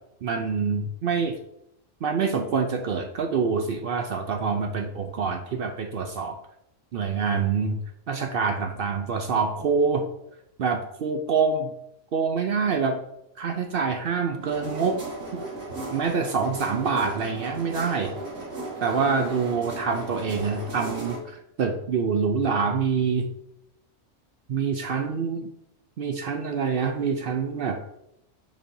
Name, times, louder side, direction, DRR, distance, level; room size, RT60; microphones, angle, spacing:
voice 1, 0.2-1.4 2.0-6.4 6.9-7.8 8.1-10.1 10.6-11.7 12.1-13.0 13.4-15.0 15.3-15.4 15.9-18.1 18.8-23.3 24.5-25.5 26.0-27.8, right 5 dB, 60° right, 5 dB, 0.6 m, -26 dB
sound 1, 14.4-21.2, right 1 dB, 80° right, 2.0 m, -36 dB
7.2 x 5.3 x 2.7 m, 0.81 s
omnidirectional pair, 1.4 m